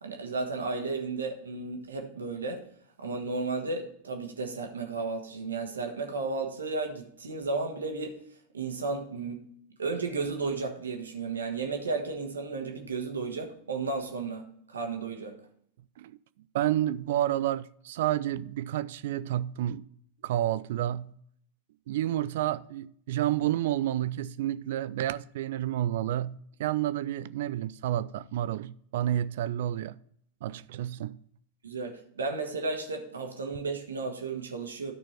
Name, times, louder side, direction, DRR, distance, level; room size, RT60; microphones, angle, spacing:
voice 1, 0.0-2.7 3.0-8.2 8.5-9.4 9.8-15.4 31.6-34.9, right 3 dB, 70° right, 1.5 m, -33 dB
voice 2, 16.5-19.8 20.2-21.1 21.9-30.0 30.4-31.2, right 12 dB, 55° right, 0.3 m, -30 dB
12.5 x 4.4 x 4.4 m
figure-of-eight pair, 90°, 0 cm